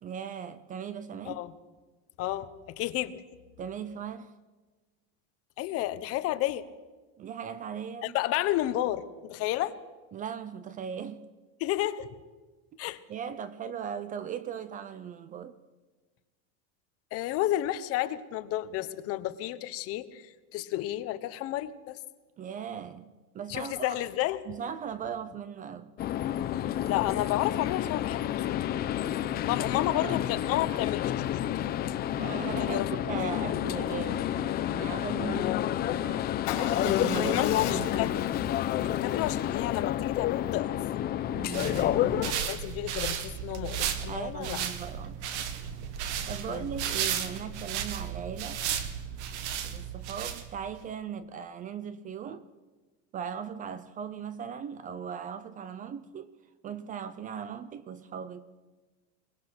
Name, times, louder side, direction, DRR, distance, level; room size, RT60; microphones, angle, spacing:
voice 1, 0.0-1.4 3.6-4.3 7.2-8.2 10.1-11.3 13.1-15.6 22.4-24.0 24.5-25.9 29.5-30.2 32.2-35.6 36.0-36.3 36.8-38.1 41.3-42.1 44.1-45.6 46.3-48.6 49.6-52.5 53.1-56.3 56.6-58.5, right 7 dB, 25° right, 0.6 m, -38 dB
voice 2, 2.2-3.2 5.6-6.6 8.0-9.8 11.6-12.1 12.8-13.0 17.1-22.0 23.5-24.4 26.9-28.7 29.4-31.8 32.6-32.9 33.2-33.5 35.4-35.7 37.1-38.4 38.8-40.8 42.4-44.6 46.5-46.7, left 14 dB, 45° left, 1.1 m, -32 dB
sound 1, 26.0-42.3, left 12 dB, 30° left, 0.7 m, -29 dB
Motorcycle / Engine starting / Idling, 36.5-40.6, left 10 dB, 70° left, 4.5 m, -38 dB
sound 2, 41.3-50.8, right 8 dB, 90° right, 2.0 m, -34 dB
22.5 x 20.5 x 6.1 m
cardioid pair, 160°, 34 cm